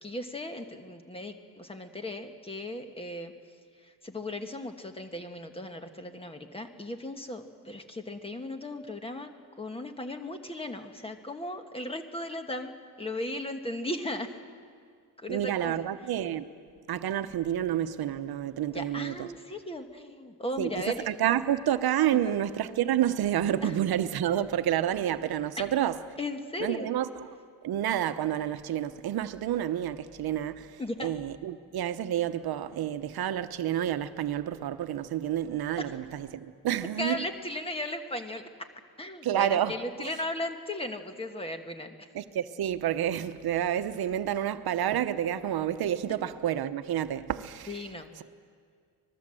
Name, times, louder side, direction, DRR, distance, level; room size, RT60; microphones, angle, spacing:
voice 1, 0.0-3.3 4.0-9.3 9.6-14.3 15.2-15.7 18.7-21.1 22.1-22.3 23.6-23.7 25.6-25.7 26.2-26.9 30.8-31.1 37.0-38.5 39.0-42.1 47.7-48.1, left 1 dB, 15° left, 1.3 m, -36 dB
voice 2, 15.3-16.4 16.9-19.3 20.6-26.0 26.6-27.3 27.6-37.2 39.2-40.1 42.1-47.8, right 11 dB, 75° right, 1.0 m, -29 dB
25.5 x 19.5 x 7.7 m
wide cardioid pair, 170°, 38 cm